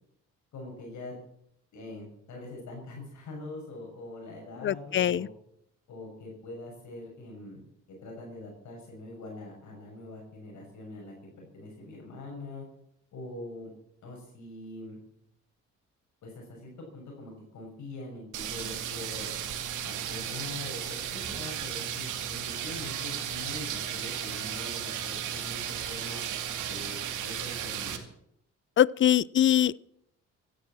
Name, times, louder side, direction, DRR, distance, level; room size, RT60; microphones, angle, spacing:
voice 1, 0.5-1.1 1.7-5.3 5.9-7.6 7.9-12.6 13.1-13.7 14.0-15.0 16.2-19.4 19.8-26.2 26.6-28.0, left 2 dB, 70° left, 6.5 m, -43 dB
voice 2, 4.6-5.3 28.8-29.8, left 11 dB, 40° left, 0.5 m, -23 dB
sound 1, 18.3-28.0, right 9 dB, 80° right, 2.5 m, -35 dB
16.0 x 11.5 x 7.5 m
cardioid pair, 90°, 30 cm